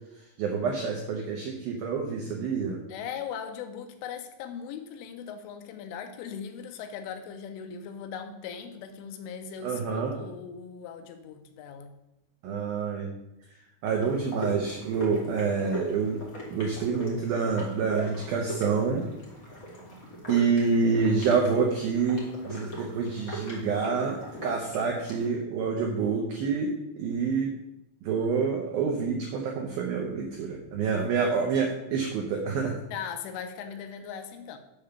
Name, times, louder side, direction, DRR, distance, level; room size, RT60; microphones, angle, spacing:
voice 1, 0.4-2.8 9.6-10.2 12.4-13.1 13.8-16.2 16.5-19.1 20.3-27.5 28.0-32.8, right 5 dB, 80° right, 1 dB, 2.1 m, -27 dB
voice 2, 2.9-12.0 32.9-34.6, left 7 dB, 85° left, 7 dB, 3.4 m, -39 dB
sound 1, 13.9-25.3, right 1 dB, 60° left, 0.9 m, -39 dB
7.8 x 5.2 x 6.9 m, 0.86 s
omnidirectional pair, 5.6 m